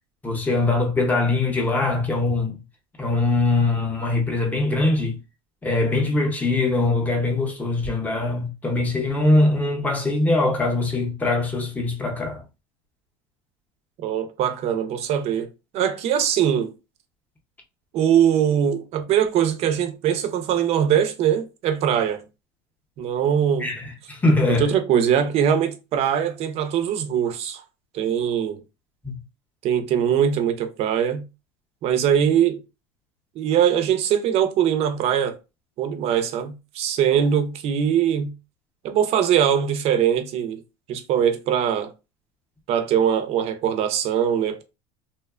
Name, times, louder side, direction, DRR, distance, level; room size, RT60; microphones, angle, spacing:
voice 1, 0.2-2.6 3.0-5.2 5.6-12.4 23.6-24.7 29.0-29.1, left 2 dB, 10° left, 0.7 m, -22 dB
voice 2, 14.0-15.5 15.7-16.7 17.9-22.2 23.0-23.7 24.6-27.6 27.9-28.6 29.6-31.2 31.8-32.6 33.4-35.4 35.8-38.3 38.8-40.6 40.9-41.9 42.7-44.6, right 9 dB, 45° right, 0.5 m, -21 dB
2.7 x 2.1 x 2.3 m
supercardioid pair, 125°, 14 cm